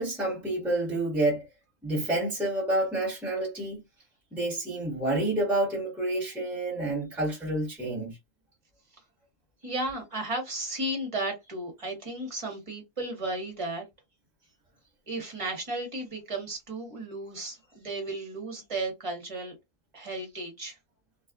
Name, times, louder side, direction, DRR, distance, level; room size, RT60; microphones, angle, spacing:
voice 1, 0.0-1.5 1.8-3.8 4.3-8.2, right 1 dB, ahead, 1.1 m, -29 dB
voice 2, 9.6-13.8 15.1-19.5 19.9-20.8, right 2 dB, 30° right, 1.0 m, -34 dB
2.5 x 2.3 x 2.3 m
omnidirectional pair, 1.3 m